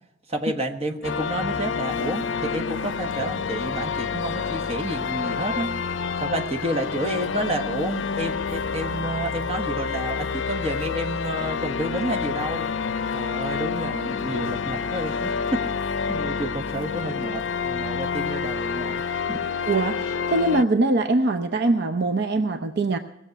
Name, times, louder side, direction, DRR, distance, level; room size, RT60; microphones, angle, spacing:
voice 1, 0.3-5.7 6.2-12.7 13.1-15.7 16.1-19.0 19.3-19.4, right 1 dB, 35° right, 4 dB, 1.3 m, -30 dB
sound 1, 1.0-20.6, left 6 dB, 70° left, 0.5 m, -28 dB
voice 2, 19.7-23.0, right 2 dB, 60° right, 7 dB, 0.7 m, -22 dB
18.5 x 7.2 x 8.1 m, 0.91 s
head